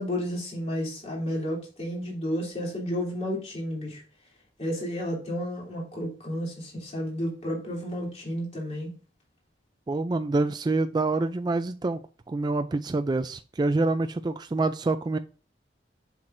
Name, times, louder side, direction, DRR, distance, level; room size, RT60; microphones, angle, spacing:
voice 1, 0.0-4.0 4.6-8.9, equal, 35° left, -2 dB, 3.0 m, -32 dB
voice 2, 9.9-12.0 12.3-15.2, right 3 dB, 25° right, 9 dB, 0.3 m, -26 dB
7.4 x 5.9 x 2.6 m, 0.34 s
head